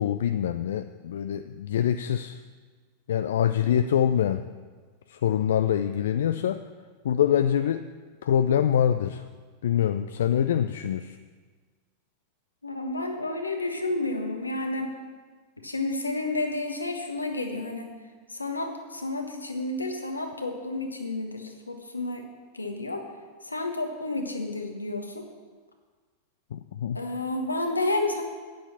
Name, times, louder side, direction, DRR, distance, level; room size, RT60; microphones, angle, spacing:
voice 1, 0.0-2.4 3.1-4.5 5.1-6.6 7.0-7.8 8.2-9.2 9.6-11.2 26.5-27.0, left 9 dB, 60° left, 10 dB, 0.4 m, -25 dB
voice 2, 12.6-15.0 15.6-17.9 18.3-22.3 22.5-23.0 23.4-25.2 26.9-28.2, left 2 dB, 80° left, 4 dB, 1.3 m, -31 dB
9.0 x 8.4 x 7.2 m, 1.5 s
figure-of-eight pair, 90°, 0 cm